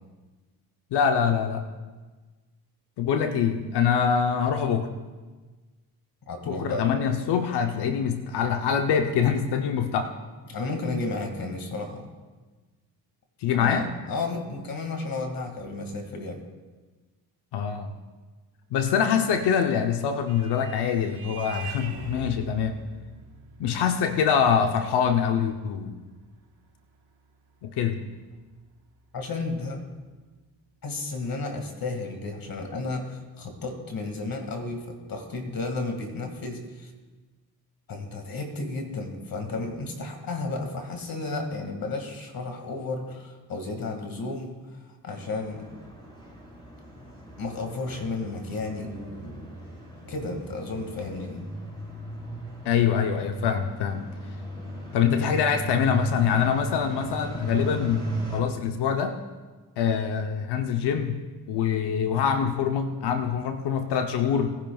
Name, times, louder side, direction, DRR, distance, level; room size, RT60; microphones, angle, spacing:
voice 1, 0.9-1.7 3.0-4.9 6.5-10.1 13.4-13.9 17.5-17.9 18.7-22.8 23.6-26.0 27.6-28.0 52.6-54.1 54.9-59.2 59.8-61.2 61.5-64.6, left 7 dB, 90° left, 6 dB, 0.8 m, -24 dB
voice 2, 6.3-6.8 10.5-12.1 13.5-16.4 29.1-29.8 30.8-36.9 37.9-44.6 45.0-45.7 47.4-49.5 50.1-51.4, left 3 dB, 60° left, 4 dB, 2.1 m, -33 dB
Vehicle horn car horn honking, 20.2-28.6, right 5 dB, 80° right, 2.6 m, -45 dB
sound 1, 45.2-58.4, equal, 10° left, 4.3 m, -36 dB
20.5 x 10.5 x 2.3 m, 1.3 s
cardioid pair, 85°, 39 cm